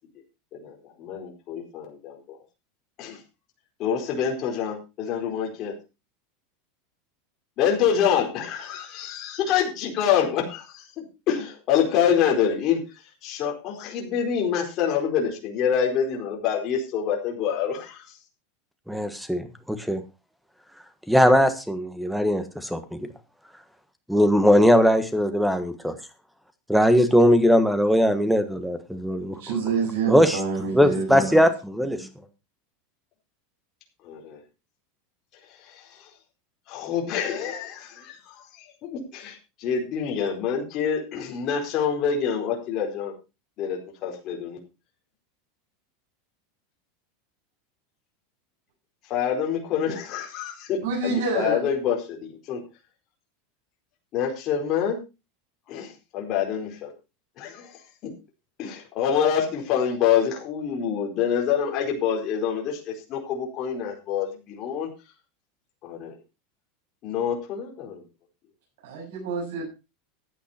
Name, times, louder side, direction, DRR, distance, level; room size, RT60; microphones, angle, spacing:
voice 1, 0.6-2.4 3.0-3.2 3.8-5.7 7.6-12.8 13.2-18.1 34.0-34.4 35.6-35.9 36.7-43.1 43.6-44.6 49.1-52.6 54.1-55.0 55.7-56.9 57.4-57.7 58.0-58.1 58.6-64.9 65.8-66.2 67.0-68.0, left 8 dB, 35° left, 0 dB, 4.7 m, -26 dB
voice 2, 18.9-20.0 21.1-22.8 24.1-25.9 26.7-29.4 30.1-30.4 30.7-32.1, equal, ahead, 10 dB, 1.4 m, -20 dB
voice 3, 29.4-31.4 50.8-51.7 68.8-69.7, right 4 dB, 75° right, -2 dB, 7.3 m, -27 dB
14.5 x 9.5 x 4.4 m, 0.29 s
supercardioid pair, 165°, 0 cm